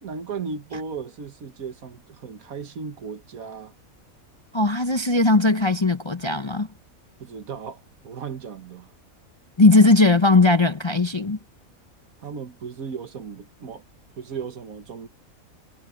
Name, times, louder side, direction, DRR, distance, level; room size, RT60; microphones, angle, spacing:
voice 1, 0.0-3.7 7.2-8.9 12.2-13.8 14.2-15.1, right 5 dB, 80° right, 1.9 m, -36 dB
voice 2, 4.5-6.7 9.6-11.4, left 2 dB, 25° left, 0.6 m, -18 dB
omnidirectional pair, 1.5 m